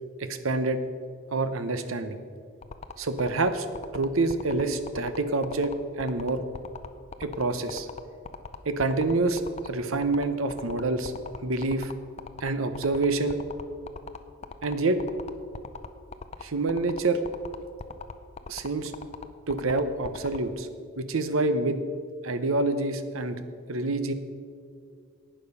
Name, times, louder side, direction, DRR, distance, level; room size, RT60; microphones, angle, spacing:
voice 1, 0.2-0.8 1.3-2.2 3.0-3.7 3.9-6.4 7.2-7.9 8.6-11.1 11.4-11.9 12.4-13.4 14.6-15.0 16.4-17.2 18.5-18.9 19.5-20.7 21.0-21.8 22.2-23.4 23.7-24.1, right 2 dB, 80° right, 10 dB, 0.8 m, -27 dB
sound 1, 2.6-20.4, left 4 dB, 30° left, 0.5 m, -39 dB
11.5 x 8.9 x 5.5 m, 2.2 s
head